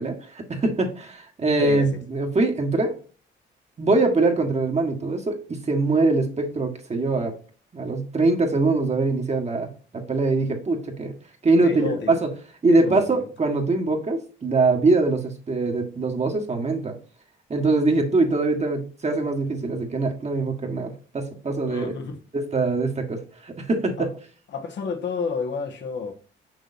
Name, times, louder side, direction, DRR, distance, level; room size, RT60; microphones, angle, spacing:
voice 1, 0.0-3.0 3.8-7.3 7.7-9.7 9.9-11.1 11.4-12.3 12.6-17.0 17.5-21.9 22.3-24.1, right 3 dB, 35° right, 1.6 m, -23 dB
voice 2, 1.6-2.0 11.6-12.2 12.7-13.3 21.6-22.2 24.0-24.1 24.5-26.1, left 5 dB, 65° left, 1.5 m, -30 dB
6.3 x 6.2 x 2.7 m
cardioid pair, 90°, 20 cm